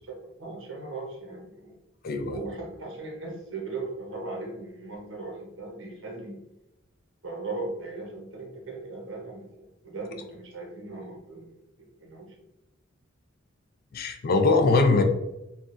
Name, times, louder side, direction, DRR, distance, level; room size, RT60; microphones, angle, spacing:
voice 1, 0.0-1.8 2.3-6.4 7.2-11.5 11.8-12.3, right 3 dB, 80° right, 0 dB, 0.8 m, -38 dB
voice 2, 2.0-2.4 13.9-15.0, left 3 dB, 50° left, 6 dB, 0.4 m, -21 dB
3.1 x 2.4 x 2.5 m, 0.92 s
head